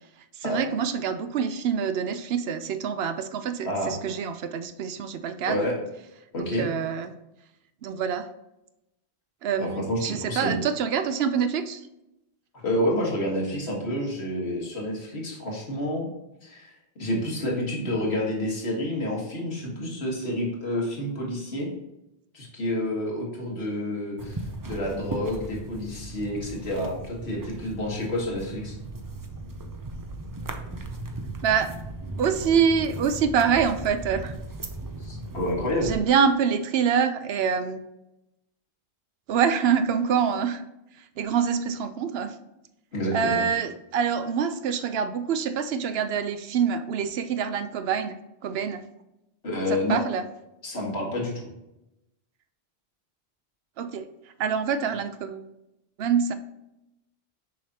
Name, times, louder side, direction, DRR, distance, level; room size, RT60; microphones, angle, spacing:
voice 1, 0.4-5.6 6.4-7.1 7.8-8.3 9.4-11.8 31.4-31.7 32.2-34.3 35.8-37.8 39.3-40.6 41.2-42.4 43.1-48.2 48.4-48.8 49.7-50.2 53.8-54.1 54.4-55.5 56.0-56.3, right 7 dB, 75° right, 10 dB, 0.8 m, -25 dB
voice 2, 6.3-6.7 9.6-10.6 12.6-16.1 16.4-16.7 17.0-21.7 22.3-28.8 35.0-35.9 42.9-43.4 49.4-50.0 50.6-51.5, left 1 dB, 80° left, -2 dB, 1.9 m, -29 dB
sound 1, 24.2-36.0, right 2 dB, 30° right, 0.4 m, -37 dB
6.5 x 5.0 x 2.8 m, 0.90 s
omnidirectional pair, 1.1 m